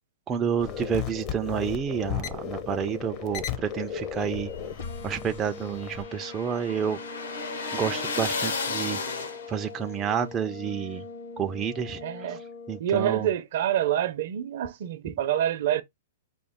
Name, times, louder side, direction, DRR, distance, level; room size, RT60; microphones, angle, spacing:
voice 1, 0.3-4.5 5.0-7.0 7.7-9.0 9.5-11.0 11.4-12.0 12.7-13.3, right 8 dB, 15° right, 0.4 m, -29 dB
sound 1, 0.6-6.0, left 8 dB, 30° left, 0.7 m, -35 dB
sound 2, 4.3-9.7, left 4 dB, 85° left, 1.8 m, -33 dB
sound 3, 4.8-12.8, left 4 dB, 55° left, 1.0 m, -42 dB
voice 2, 12.0-12.4 12.8-15.8, right 10 dB, 55° right, 0.7 m, -27 dB
5.2 x 2.4 x 3.5 m
hypercardioid pair, 160°, 0 cm